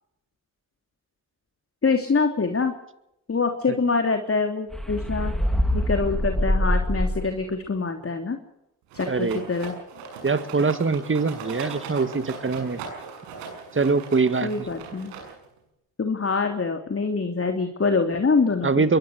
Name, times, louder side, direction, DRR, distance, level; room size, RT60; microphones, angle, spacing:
voice 1, 1.8-2.7 3.3-5.3 5.7-8.4 8.9-9.7 14.4-15.1 16.0-18.8, left 4 dB, 30° left, 6 dB, 3.2 m, -25 dB
sound 1, 4.7-7.5, equal, ahead, 4.2 m, -24 dB
Rattle, 8.9-15.6, right 5 dB, 85° right, 6.9 m, -39 dB
voice 2, 9.1-9.4 10.2-12.8 13.7-14.7 18.6-19.0, right 4 dB, 30° right, 12 dB, 2.0 m, -23 dB
22.5 x 20.5 x 6.5 m, 0.81 s
hypercardioid pair, 55°, 43 cm